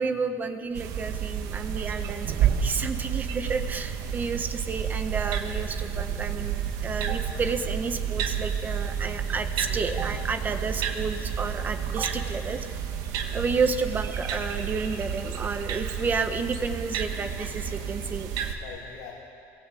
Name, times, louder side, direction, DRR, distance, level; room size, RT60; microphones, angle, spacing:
voice 1, 0.0-12.7 13.3-18.6, right 4 dB, 25° right, 7 dB, 1.4 m, -31 dB
sound 1, 0.8-18.5, right 8 dB, 65° right, 2.4 m, -30 dB
voice 2, 9.4-9.8 13.3-13.6 18.5-19.1, left 7 dB, 90° left, -5 dB, 5.0 m, -45 dB
29.0 x 22.0 x 8.6 m, 2.4 s
cardioid pair, 140°, 7 cm